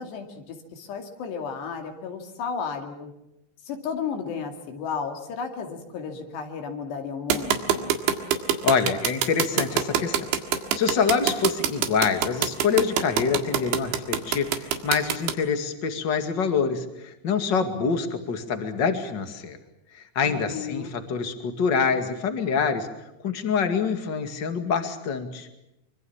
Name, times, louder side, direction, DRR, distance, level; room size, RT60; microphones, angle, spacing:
voice 1, 0.0-3.1 3.7-7.9 20.2-21.0, left 6 dB, 70° left, 4 dB, 4.5 m, -33 dB
sound 1, 7.3-15.3, right 9 dB, 85° right, 4.0 m, -24 dB
voice 2, 8.6-10.2 10.7-19.6 19.9-22.9 23.2-25.5, left 6 dB, 35° left, 7 dB, 1.9 m, -26 dB
25.0 x 24.5 x 7.3 m, 0.88 s
omnidirectional pair, 5.1 m